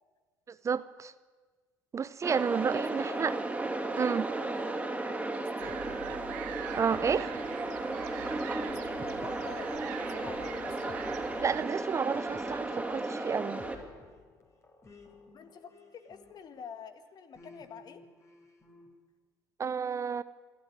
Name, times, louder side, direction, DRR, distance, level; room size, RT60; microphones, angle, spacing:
voice 1, 0.6-1.1 1.9-3.3 4.0-4.3 6.8-7.3 11.4-13.6 19.6-20.2, right 6 dB, 30° right, 16 dB, 0.7 m, -31 dB
sound 1, 2.2-13.8, right 2 dB, 10° right, 3.3 m, -34 dB
voice 2, 5.2-5.8 8.7-11.0 15.3-18.0, left 7 dB, 45° left, 10 dB, 1.9 m, -48 dB
sound 2, 5.6-16.7 17.3-18.9, left 4 dB, 30° left, 4.0 m, -54 dB
sound 3, 5.6-11.7, right 14 dB, 75° right, 1.0 m, -44 dB
24.5 x 12.5 x 9.5 m, 1.4 s
hypercardioid pair, 70°, 9 cm